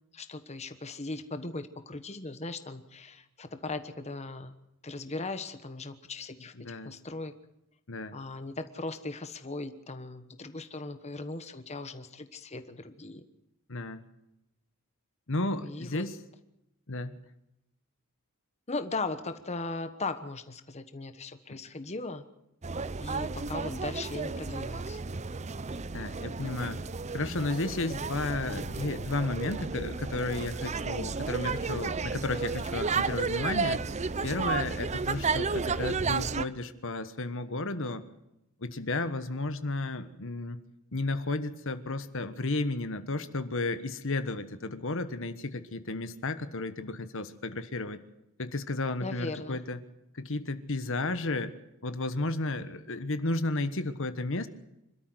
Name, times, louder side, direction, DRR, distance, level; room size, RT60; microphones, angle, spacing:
voice 1, 0.1-4.5 4.8-7.3 8.1-13.2 15.6-16.0 18.7-22.2 23.0-25.0 49.0-49.6, left 3 dB, 30° left, 9 dB, 1.2 m, -38 dB
voice 2, 6.6-6.9 7.9-8.1 13.7-14.0 15.3-16.1 16.9-17.2 21.5-21.6 25.9-26.8 27.1-33.8 34.2-38.1 38.6-40.6 40.9-48.0 48.4-49.8 50.1-51.5 51.8-54.5, left 2 dB, 60° left, 11 dB, 1.3 m, -33 dB
sound 1, 22.6-36.4, right 4 dB, 30° right, 0.6 m, -32 dB
26.0 x 13.0 x 7.9 m, 0.87 s
head